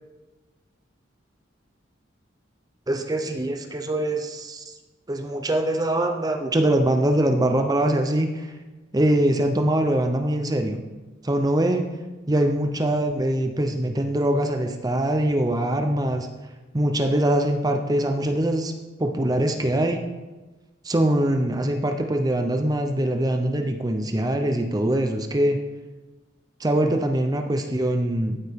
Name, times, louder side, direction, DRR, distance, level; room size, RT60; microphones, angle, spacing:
voice 1, 2.9-4.7 5.1-8.5 8.9-10.8 11.2-11.9 12.3-16.3 16.7-18.7 19.0-20.1 20.8-25.6 26.6-28.4, right 1 dB, 20° right, 5 dB, 0.6 m, -23 dB
13.0 x 7.9 x 3.6 m, 1.2 s
head